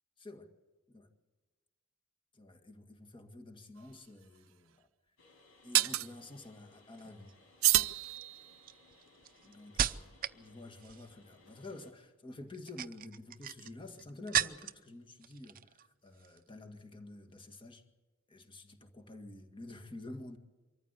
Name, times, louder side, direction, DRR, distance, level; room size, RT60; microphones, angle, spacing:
voice 1, 0.2-0.5 0.9-1.1 2.3-4.9 5.6-7.3 9.4-17.8 18.3-20.4, left 2 dB, 25° left, 6 dB, 1.9 m, -49 dB
sound 1, 3.8-3.9 5.7-6.1 7.6-8.7, right 16 dB, 85° right, 0.6 m, -29 dB
sound 2, 5.2-11.9, left 2 dB, 75° left, 5.3 m, -63 dB
sound 3, 6.9-7.3 8.0-10.4 10.7-11.2 12.5-14.9 15.2-15.9 16.1-16.4, right 9 dB, 45° right, 0.6 m, -37 dB
24.5 x 14.5 x 8.2 m, 1.3 s
head